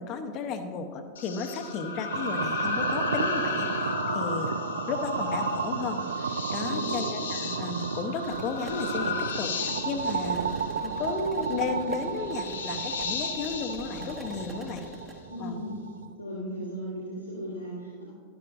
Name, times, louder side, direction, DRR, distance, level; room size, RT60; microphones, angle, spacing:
voice 1, 0.0-4.5 4.9-10.5 10.8-14.8 15.4-15.6, left 4 dB, 35° left, 7 dB, 0.8 m, -34 dB
sound 1, 1.2-15.0, left 5 dB, 65° left, 0.9 m, -35 dB
sound 2, 2.1-16.1, right 6 dB, 70° right, 0.4 m, -33 dB
voice 2, 6.6-7.0 15.3-15.8 16.2-18.0, equal, 90° left, -9 dB, 1.9 m, -36 dB
sound 3, 8.1-15.2, right 2 dB, 20° right, 1.1 m, -46 dB
12.0 x 11.5 x 2.5 m, 2.1 s
figure-of-eight pair, 90°, 0 cm